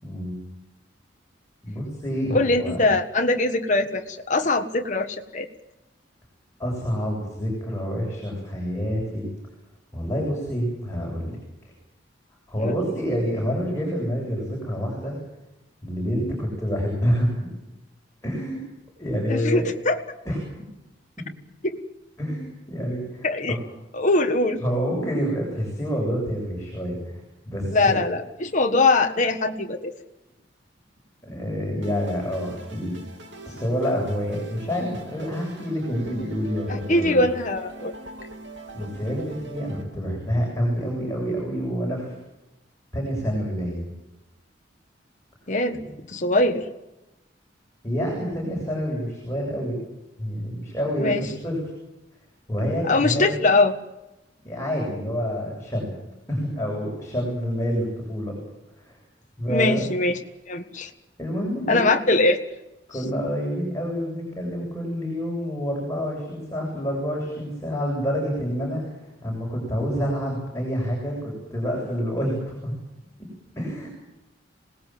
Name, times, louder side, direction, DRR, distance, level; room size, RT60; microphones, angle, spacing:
voice 1, 0.0-0.4 1.6-2.8 6.6-9.2 9.9-11.4 12.5-15.2 15.8-17.3 18.2-18.6 19.0-19.6 20.2-20.4 22.2-23.6 24.6-27.2 27.5-28.0 31.3-32.9 33.5-37.2 38.7-42.1 42.9-43.8 45.7-45.9 47.8-49.8 50.2-51.6 52.5-53.3 54.4-55.9 56.3-58.3 58.8-59.0 59.4-59.9 61.2-61.8 62.9-68.8 69.2-72.7 73.6-74.0, equal, 15° left, -2 dB, 7.9 m, -27 dB
voice 2, 2.3-5.5 12.6-12.8 19.3-20.0 23.2-23.6 23.9-24.6 27.7-29.9 36.7-37.9 45.5-46.7 51.0-51.3 52.9-53.7 59.5-60.2 60.5-60.9 61.7-62.4, left 2 dB, 45° left, 4 dB, 1.5 m, -22 dB
sound 1, 31.8-39.8, right 2 dB, 75° right, 3.4 m, -42 dB
27.0 x 19.0 x 7.7 m, 0.96 s
head